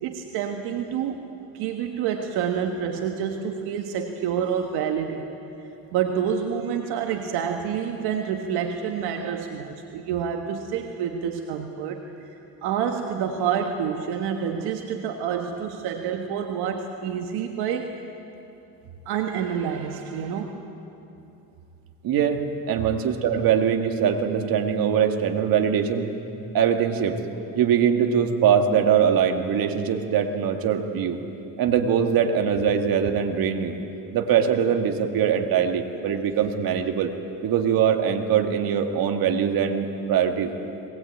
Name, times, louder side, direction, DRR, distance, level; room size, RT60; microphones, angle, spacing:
voice 1, 0.0-1.2 1.5-5.3 5.9-12.0 12.6-17.9 19.0-20.6, right 8 dB, 80° right, 3 dB, 1.5 m, -28 dB
voice 2, 22.0-26.1 26.5-27.2 27.6-31.2 31.6-33.8 34.1-37.1 37.4-40.5, right 8 dB, 65° right, 4 dB, 2.1 m, -22 dB
21.5 x 19.0 x 8.6 m, 2.8 s
cardioid pair, 95°, 38 cm